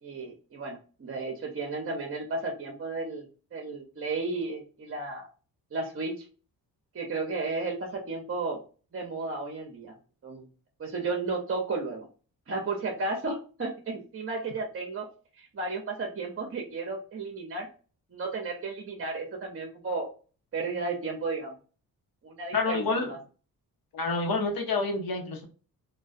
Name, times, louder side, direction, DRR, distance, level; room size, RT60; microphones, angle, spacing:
voice 1, 0.0-5.3 5.7-6.3 6.9-8.6 8.9-9.9 10.2-10.5 10.8-12.1 12.5-15.1 15.4-17.7 18.1-20.1 20.5-21.5 22.2-23.2, right 3 dB, 35° right, 1 dB, 0.6 m, -33 dB
voice 2, 22.5-23.1 23.9-25.5, left 3 dB, 65° left, 3 dB, 0.8 m, -28 dB
2.3 x 2.2 x 2.5 m, 0.36 s
cardioid pair, 65°, 39 cm